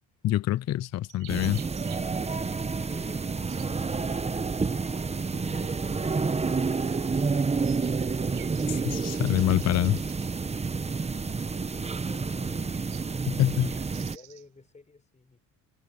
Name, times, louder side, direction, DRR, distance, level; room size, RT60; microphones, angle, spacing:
voice 1, 0.2-1.6 8.9-10.0 13.3-13.7, left 14 dB, 50° left, 0.5 m, -25 dB
sound 1, 0.6-14.7, right 16 dB, 85° right, 5.4 m, -53 dB
sound 2, 1.3-14.2, right 4 dB, 20° right, 0.9 m, -29 dB
voice 2, 2.6-4.0 8.5-9.0 10.4-13.0 13.3-15.4, left 3 dB, 20° left, 6.2 m, -53 dB
cardioid pair, 105°, 35 cm